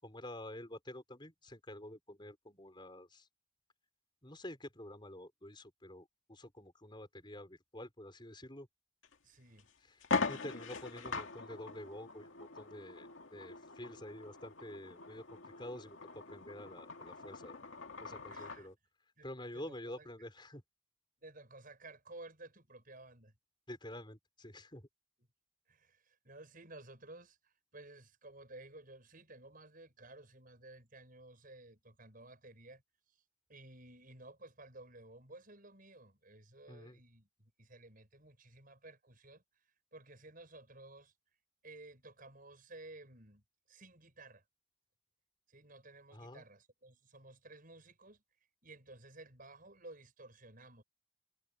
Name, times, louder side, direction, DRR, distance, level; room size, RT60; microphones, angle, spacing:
voice 1, 0.0-3.3 4.2-8.7 10.3-17.6 18.0-18.8 19.2-20.6 23.7-24.9 36.7-37.0 46.1-46.4, left 1 dB, 20° left, 5.6 m, -48 dB
sound 1, 9.0-9.1 9.6-9.7 10.0-18.7, left 4 dB, 65° left, 2.3 m, -42 dB
voice 2, 9.2-9.7 18.3-18.7 19.2-20.1 21.2-23.3 25.7-32.8 33.5-39.4 39.9-41.1 41.6-44.4 45.5-48.2 48.6-50.8, right 2 dB, 40° right, 7.1 m, -55 dB
head